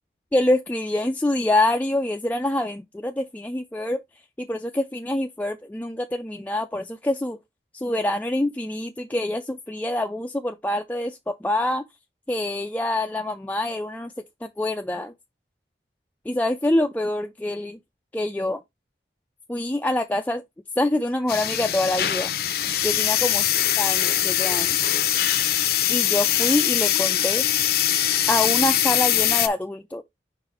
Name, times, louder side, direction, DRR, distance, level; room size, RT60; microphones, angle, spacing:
voice 1, 0.3-4.0 4.4-7.4 7.7-11.8 12.3-14.1 14.4-15.1 16.3-17.8 18.1-18.6 19.5-20.4 20.8-22.3 22.8-23.5 23.8-24.8 25.9-27.4 28.3-30.0, left 1 dB, 10° left, 0.3 m, -25 dB
sound 1, 21.3-29.5, left 12 dB, 60° left, 0.6 m, -22 dB
5.5 x 3.9 x 4.3 m
head